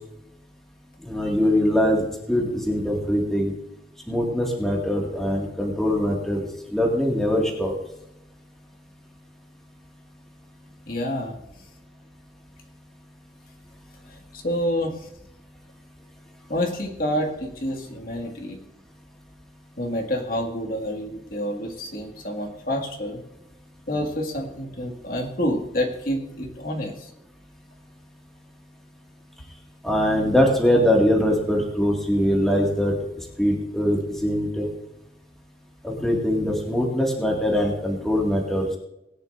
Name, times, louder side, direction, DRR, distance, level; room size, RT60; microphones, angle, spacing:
voice 1, 1.0-3.5 4.1-7.7 29.8-32.9 33.4-34.7 35.8-38.7, equal, ahead, -2 dB, 2.1 m, -22 dB
voice 2, 10.9-11.4 14.1-15.1 16.5-18.6 19.8-23.2 23.9-27.1, equal, 50° left, 1 dB, 2.0 m, -28 dB
20.5 x 11.0 x 2.6 m, 0.87 s
head